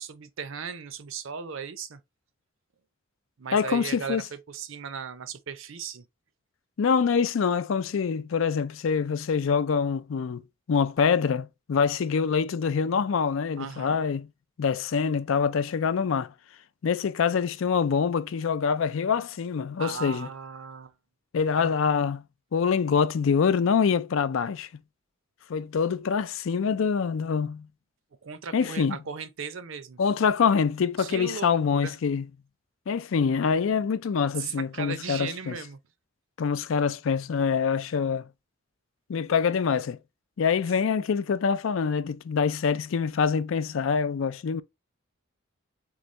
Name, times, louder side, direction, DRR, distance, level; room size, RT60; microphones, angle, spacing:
voice 1, 0.0-2.0 3.4-6.1 13.6-14.0 19.8-20.9 21.6-21.7 28.2-30.0 31.0-32.0 34.4-35.8 36.8-36.9, right 6 dB, 65° right, 0.6 m, -37 dB
voice 2, 3.5-4.2 6.8-10.4 10.7-14.3 14.6-16.3 16.8-20.3 21.3-22.2 22.5-24.7 25.5-27.7 28.5-29.0 30.0-32.3 32.9-35.6 36.4-38.3 39.1-40.0 40.4-44.6, left 6 dB, 65° left, 0.4 m, -25 dB
3.9 x 3.4 x 3.1 m
head